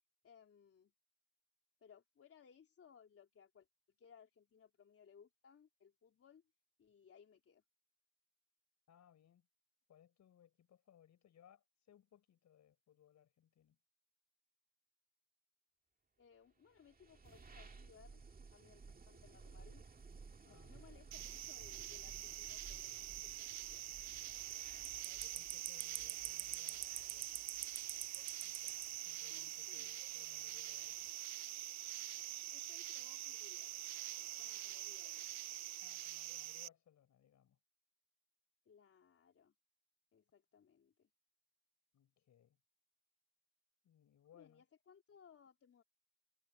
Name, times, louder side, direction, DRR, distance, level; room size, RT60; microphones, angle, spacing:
voice 1, 0.2-0.9 1.8-3.7 4.0-6.4 6.8-7.6 16.2-18.2 18.5-19.8 20.5-23.8 29.3-29.9 32.5-33.8 34.2-35.3 38.7-39.6 40.1-41.1 44.3-45.8, left 7 dB, 50° left, 3.7 m, -64 dB
voice 2, 8.9-9.5 9.9-13.8 20.4-20.7 25.0-27.4 28.4-31.0 35.8-37.6 41.9-42.6 43.8-44.7, left 10 dB, 65° left, 6.6 m, -67 dB
sound 1, 16.6-31.3, right 4 dB, 30° right, 2.2 m, -58 dB
sound 2, 21.1-36.7, right 15 dB, 60° right, 0.5 m, -45 dB
cardioid pair, 90°, 30 cm